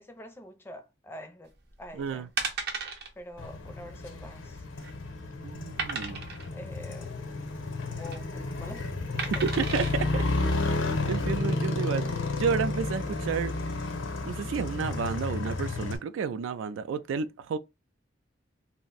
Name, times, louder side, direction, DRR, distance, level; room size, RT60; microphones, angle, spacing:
voice 1, 0.0-2.3 3.2-4.6 6.5-7.2 7.9-8.9 9.4-9.5, left 1 dB, 10° left, 0.5 m, -45 dB
sound 1, 1.7-1.9 2.4-3.1 3.4-3.6 3.9-4.0 4.5-5.0 5.8-6.5 7.8-8.2 9.2-9.9 10.5-10.6, right 4 dB, 55° right, 0.7 m, -34 dB
voice 2, 1.9-2.3 5.4-6.2 9.1-10.2 11.1-12.1 12.4-13.5 14.2-17.6, right 6 dB, 75° right, 0.3 m, -31 dB
Motorcycle, 3.4-16.0, left 2 dB, 80° left, 0.7 m, -31 dB
2.5 x 2.1 x 3.9 m
head